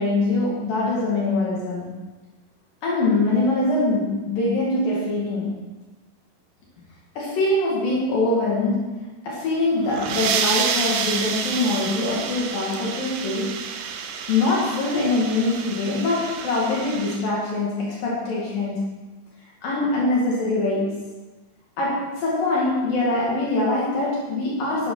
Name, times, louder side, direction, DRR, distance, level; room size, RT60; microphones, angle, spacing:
voice 1, 0.0-1.9 2.8-5.6 7.2-13.5 14.3-18.9 19.6-21.1 21.8-24.9, left 2 dB, 60° left, -5 dB, 3.6 m, -23 dB
sound 1, 9.7-17.2, right 6 dB, 75° right, 2.1 m, -29 dB
12.0 x 12.0 x 3.9 m, 1.2 s
omnidirectional pair, 4.6 m